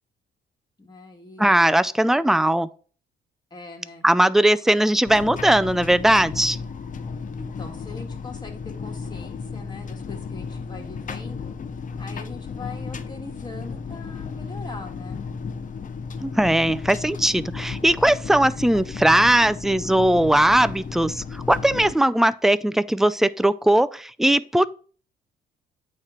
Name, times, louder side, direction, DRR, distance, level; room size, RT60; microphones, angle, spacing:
voice 1, 0.8-1.6 3.5-4.1 7.4-11.5 12.0-15.2, left 3 dB, 20° left, 2.0 m, -41 dB
voice 2, 1.4-2.7 4.0-6.6 16.2-24.7, right 1 dB, ahead, 0.3 m, -19 dB
sound 1, 5.0-21.9, left 5 dB, 40° left, 0.7 m, -34 dB
8.6 x 3.1 x 5.7 m
cardioid pair, 90°, 20 cm